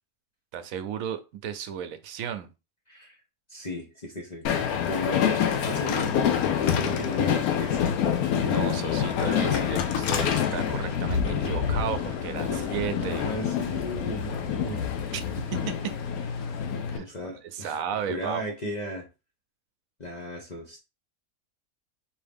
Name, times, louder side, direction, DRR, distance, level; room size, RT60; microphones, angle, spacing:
voice 1, 0.5-2.5 8.3-13.3 15.1-15.2 15.5-15.9 16.9-17.1 17.4-18.4, right 9 dB, 75° right, 10 dB, 1.0 m, -34 dB
voice 2, 2.9-3.2 3.5-4.5 4.9-6.4 6.7-7.9 12.5-12.6 13.1-14.8 16.9-19.1 20.0-20.8, equal, 35° left, 0 dB, 0.8 m, -35 dB
Train, 4.5-17.0, left 8 dB, 85° left, 1.1 m, -27 dB
sound 1, 5.8-16.7, left 3 dB, 65° left, 1.3 m, -38 dB
4.7 x 2.7 x 3.4 m, 0.28 s
omnidirectional pair, 1.5 m